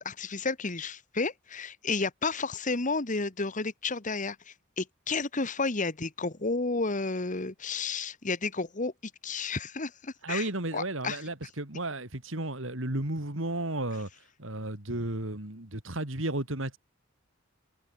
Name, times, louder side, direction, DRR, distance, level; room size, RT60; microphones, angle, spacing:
voice 1, 0.0-8.9 9.2-11.2, left 3 dB, 40° left, 1.5 m, -32 dB
voice 2, 10.2-14.1 14.4-16.8, right 1 dB, 65° right, 3.5 m, -33 dB
head